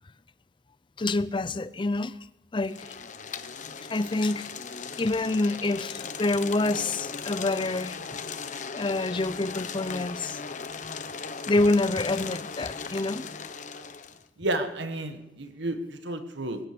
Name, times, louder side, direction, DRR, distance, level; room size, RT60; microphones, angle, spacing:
voice 1, 1.0-2.1 2.5-2.9 3.9-4.5 5.0-8.0 8.7-10.4 11.5-13.2, left 2 dB, 25° left, 17 dB, 0.5 m, -27 dB
sound 1, 2.6-14.2, left 5 dB, 45° left, 0.9 m, -38 dB
voice 2, 14.4-16.6, right 1 dB, 80° right, 8 dB, 1.6 m, -31 dB
21.5 x 9.7 x 6.9 m, 0.99 s
head